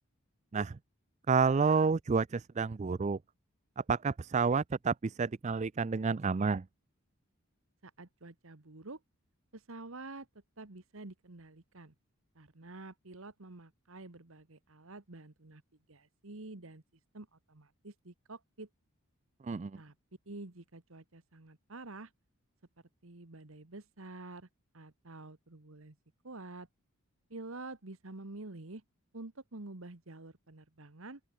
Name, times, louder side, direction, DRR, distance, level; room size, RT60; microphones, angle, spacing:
voice 1, 1.3-3.2 3.9-6.6 19.4-19.7, right 5 dB, 30° right, 0.4 m, -29 dB
voice 2, 7.8-9.0 9.5-10.3 10.6-11.9 12.3-15.6 15.9-16.8 17.1-18.7 19.7-19.9 20.2-22.1 23.0-24.5 24.7-25.9 26.2-26.7 27.3-28.8 29.1-31.2, right 2 dB, 65° right, 1.6 m, -48 dB
open air
head